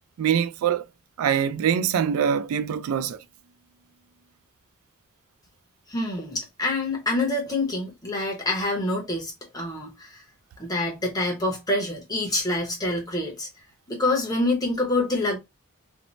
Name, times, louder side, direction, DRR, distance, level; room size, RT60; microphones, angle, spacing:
voice 1, 0.2-0.8 1.2-3.2, right 8 dB, 80° right, 0.3 m, -23 dB
voice 2, 5.9-10.2 10.6-13.5 13.9-15.4, left 2 dB, 15° left, 0.7 m, -26 dB
2.6 x 2.0 x 2.9 m
head